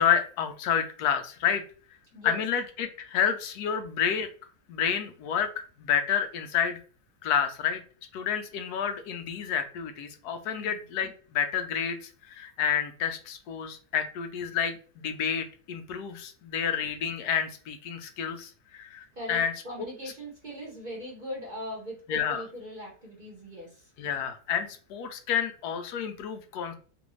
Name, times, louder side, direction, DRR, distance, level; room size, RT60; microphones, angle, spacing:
voice 1, 0.0-1.6 2.2-4.3 4.7-6.8 7.2-7.8 8.1-19.5 22.1-22.4 24.0-26.7, left 8 dB, 85° left, 7 dB, 1.1 m, -29 dB
voice 2, 19.1-23.9, equal, 40° right, -2 dB, 0.8 m, -40 dB
3.0 x 2.6 x 3.0 m, 0.40 s
omnidirectional pair, 1.6 m